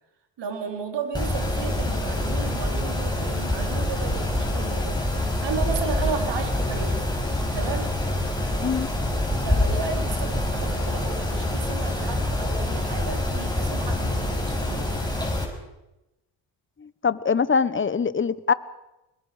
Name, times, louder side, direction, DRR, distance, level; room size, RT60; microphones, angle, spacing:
voice 1, 0.4-5.0 5.4-7.1 7.5-8.0 9.4-15.1, right 5 dB, 60° right, 4 dB, 4.1 m, -34 dB
Mechanisms, 1.1-15.4, left 1 dB, 10° left, 6.1 m, -26 dB
voice 2, 8.6-8.9 16.8-18.5, left 5 dB, 25° left, 16 dB, 1.2 m, -23 dB
25.5 x 21.5 x 5.1 m, 0.94 s
supercardioid pair, 65°, 47 cm